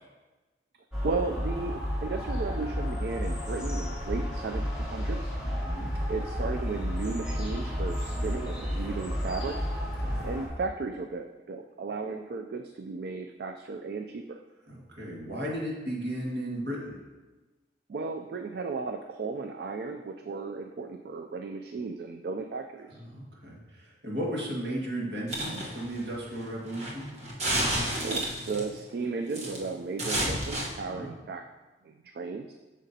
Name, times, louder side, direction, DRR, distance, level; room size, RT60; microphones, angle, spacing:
sound 1, 0.9-10.5, equal, 5° right, 1.6 m, -32 dB
voice 1, 1.0-5.3 6.1-9.6 10.2-14.4 17.9-23.0 28.0-31.5 31.9-32.5, right 4 dB, 60° right, 5 dB, 0.3 m, -35 dB
voice 2, 5.4-5.9 10.0-10.3 14.7-17.0 23.0-27.1 30.8-31.1, right 1 dB, 75° right, -3 dB, 1.8 m, -35 dB
sound 2, 25.3-28.7 29.3-29.7 30.0-30.7, right 1 dB, 40° right, 1.1 m, -31 dB
8.8 x 6.2 x 2.8 m, 1.2 s
head